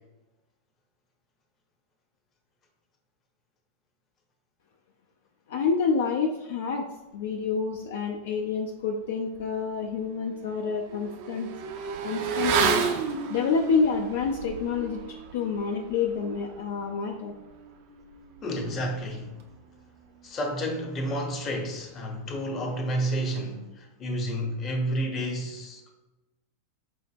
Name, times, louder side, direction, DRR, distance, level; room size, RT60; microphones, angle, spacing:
voice 1, 5.5-6.8 7.1-11.5 12.0-15.0 15.3-17.3, left 5 dB, 55° left, 0.3 m, -28 dB
Motorcycle / Accelerating revving vroom, 9.4-9.5 9.9-19.9 20.2-20.3, right 6 dB, 45° right, 0.4 m, -32 dB
voice 2, 18.4-19.3 20.2-25.9, equal, 30° left, 0.7 m, -30 dB
5.2 x 2.0 x 3.4 m
figure-of-eight pair, 90°, 0 cm